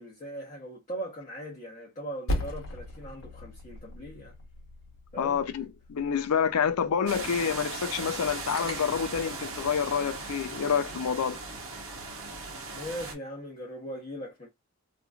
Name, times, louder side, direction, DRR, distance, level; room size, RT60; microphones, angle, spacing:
voice 1, 0.0-4.3 5.1-5.4 6.6-6.8 12.7-14.5, right 1 dB, 30° left, 0.8 m, -40 dB
Percussion, 2.3-7.1, left 1 dB, 65° left, 1.0 m, -38 dB
voice 2, 5.2-11.4, left 7 dB, 90° left, 0.4 m, -28 dB
sound 1, 7.1-13.1, right 3 dB, 65° right, 0.8 m, -38 dB
sound 2, 8.4-9.3, right 1 dB, 20° right, 0.9 m, -42 dB
2.9 x 2.6 x 2.3 m
head